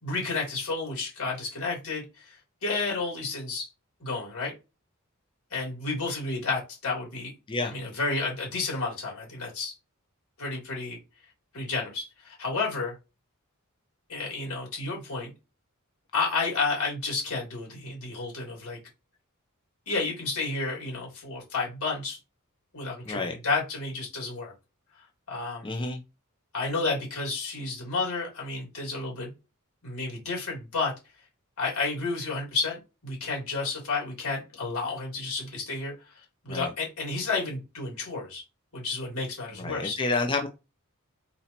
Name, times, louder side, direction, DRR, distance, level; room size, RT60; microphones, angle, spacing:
voice 1, 0.0-3.7 4.0-4.5 5.5-7.3 7.7-9.7 10.4-11.0 11.5-12.9 14.1-15.3 16.1-18.8 19.9-22.2 22.7-24.5 25.3-25.7 26.5-29.3 29.8-30.9 31.6-35.9 36.4-38.4 38.7-39.9, left 3 dB, 80° left, 2.8 m, -31 dB
voice 2, 25.6-26.0 36.5-36.7 39.5-40.5, left 3 dB, 25° left, 0.5 m, -29 dB
4.0 x 2.8 x 4.2 m
head